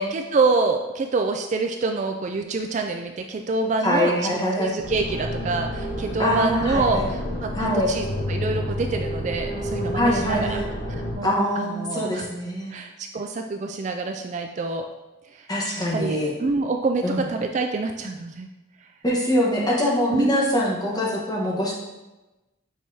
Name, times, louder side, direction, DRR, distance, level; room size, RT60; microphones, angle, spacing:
voice 1, 0.0-4.1 4.6-10.6 10.9-12.3 12.7-14.9 15.3-15.5 15.9-18.5 20.1-20.6, right 3 dB, 35° right, 4 dB, 0.3 m, -26 dB
voice 2, 3.8-4.7 6.2-7.1 7.5-7.9 9.9-10.7 11.2-12.7 15.5-16.3 17.0-17.2 19.0-21.7, left 1 dB, 20° left, -4 dB, 1.2 m, -23 dB
sound 1, 4.8-11.1, equal, 40° left, 1.1 m, -29 dB
7.3 x 4.6 x 2.8 m, 1.1 s
head